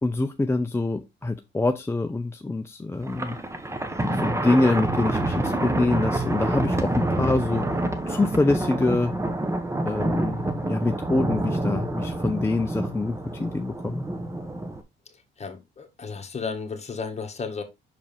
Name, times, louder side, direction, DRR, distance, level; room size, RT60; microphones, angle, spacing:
voice 1, 0.0-3.4 4.1-9.1 9.8-10.4 10.7-14.0, left 2 dB, 15° left, 0.6 m, -25 dB
Thunder, 3.0-14.8, right 1 dB, 15° right, 1.0 m, -27 dB
voice 2, 15.1-17.6, left 5 dB, 35° left, 1.7 m, -34 dB
6.0 x 4.9 x 3.5 m
cardioid pair, 90°, 20 cm